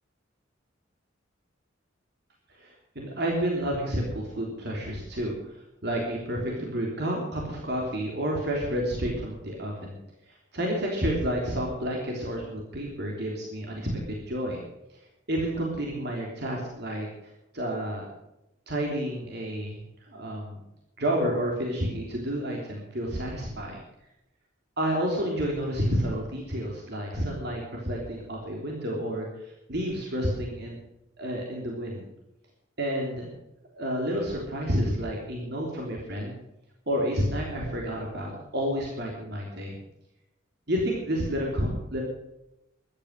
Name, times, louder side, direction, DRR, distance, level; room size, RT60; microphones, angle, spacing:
voice 1, 2.5-10.0 10.3-14.6 15.3-18.1 18.7-19.8 20.1-20.6 21.0-23.8 24.8-30.8 31.2-32.1 32.8-33.3 33.7-36.4 36.9-39.8 40.7-42.0, equal, 55° right, -1 dB, 3.4 m, -30 dB
14.5 x 12.0 x 6.6 m, 0.87 s
head